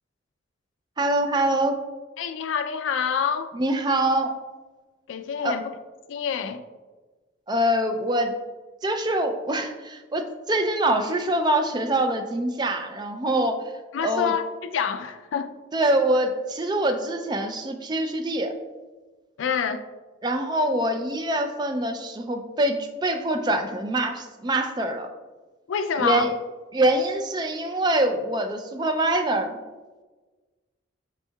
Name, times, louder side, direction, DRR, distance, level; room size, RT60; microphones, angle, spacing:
voice 1, 1.0-1.8 3.5-4.3 5.4-5.6 7.5-8.3 8.8-13.6 14.0-14.3 15.7-18.5 20.2-25.1 26.0-26.3 26.7-29.6, right 1 dB, 20° right, 6 dB, 0.3 m, -24 dB
voice 2, 2.2-3.5 5.1-5.7 6.1-6.6 13.9-15.5 19.4-19.8 25.7-26.3, left 7 dB, 75° left, 9 dB, 0.3 m, -27 dB
5.3 x 4.4 x 2.2 m, 1.3 s
head